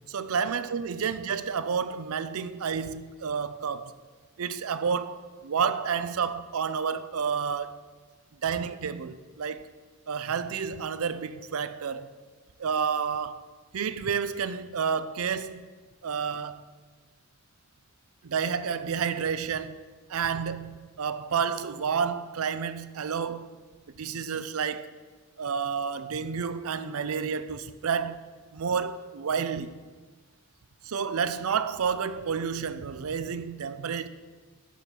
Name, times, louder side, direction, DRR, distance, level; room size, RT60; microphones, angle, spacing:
voice 1, 0.1-3.9 4.4-7.8 8.4-9.6 10.1-12.1 12.6-13.4 13.7-15.7 16.0-16.7 18.2-19.8 20.1-23.6 24.0-24.9 25.4-29.7 30.8-34.1, right 6 dB, 80° right, 0.5 m, -30 dB
11.0 x 4.6 x 6.8 m
head